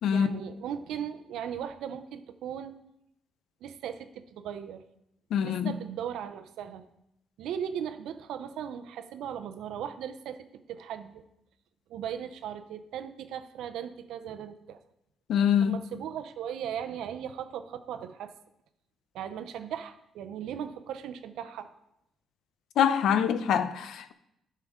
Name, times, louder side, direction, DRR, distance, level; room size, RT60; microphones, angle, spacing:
voice 1, 0.1-2.8 3.6-4.8 5.4-6.8 7.4-11.2 11.9-14.8 15.6-18.3 19.1-21.7, right 9 dB, 85° right, 0.6 m, -38 dB
voice 2, 5.3-5.7 15.3-15.8 22.8-24.1, left 8 dB, 75° left, 0.5 m, -24 dB
11.5 x 5.6 x 3.7 m
cardioid pair, 90°, 0 cm